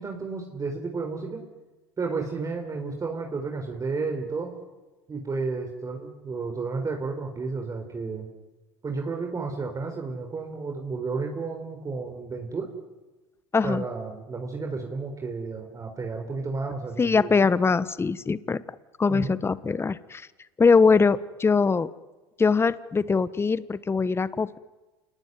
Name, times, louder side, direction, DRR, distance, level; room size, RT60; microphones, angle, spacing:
voice 1, 0.0-1.4 2.0-4.5 5.1-8.3 8.8-12.7 13.6-17.3 19.1-19.4, right 4 dB, 25° right, 3 dB, 4.4 m, -32 dB
voice 2, 13.5-13.8 17.0-18.6 19.0-20.3 20.6-21.9 22.4-24.6, left 4 dB, 20° left, 17 dB, 1.1 m, -22 dB
28.5 x 19.5 x 9.6 m, 1.2 s
hypercardioid pair, 85°, 12 cm